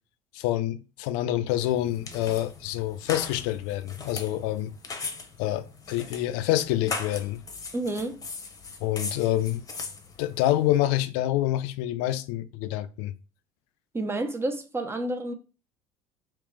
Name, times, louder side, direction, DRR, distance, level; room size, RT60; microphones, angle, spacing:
voice 1, 0.3-4.7 5.4-7.4 8.8-9.6 10.2-13.1, left 14 dB, 60° left, 0.4 m, -27 dB
sound 1, 1.6-10.8, left 4 dB, 25° left, 0.8 m, -39 dB
voice 2, 7.7-8.2 13.9-15.3, right 2 dB, 15° right, 0.6 m, -30 dB
3.2 x 3.1 x 3.2 m
figure-of-eight pair, 65°, 14 cm